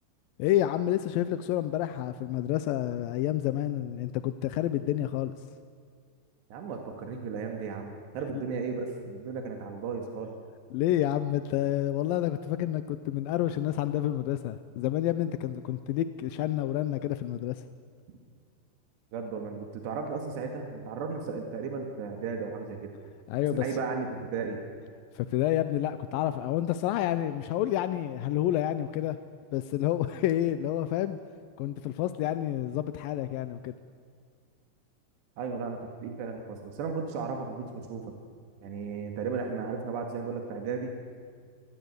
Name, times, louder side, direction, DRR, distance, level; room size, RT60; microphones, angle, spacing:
voice 1, 0.4-5.3 8.3-8.4 10.7-17.6 23.3-23.7 25.2-29.2 29.5-31.2 31.6-33.7, left 13 dB, 80° left, 11 dB, 2.1 m, -29 dB
voice 2, 6.5-10.3 19.1-22.9 23.6-24.6 35.4-38.1 38.6-40.9, right 5 dB, 80° right, 3 dB, 4.2 m, -35 dB
27.5 x 20.0 x 8.2 m, 2.1 s
omnidirectional pair, 4.9 m